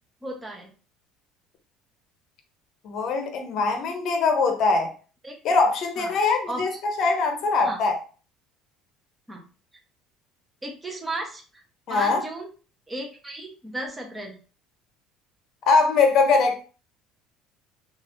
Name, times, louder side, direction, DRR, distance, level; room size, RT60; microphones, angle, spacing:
voice 1, 0.2-0.7 5.2-5.3 6.0-6.1 6.5-6.6 7.6-7.8 9.3-9.4 10.6-11.4 11.9-12.5 12.9-14.4, right 2 dB, 10° right, 0.8 m, -34 dB
voice 2, 2.8-4.9 5.4-6.7 7.0-8.0 11.9-12.2 15.7-16.6, left 4 dB, 50° left, 0.8 m, -22 dB
2.9 x 2.5 x 2.9 m
cardioid pair, 135°, 0 cm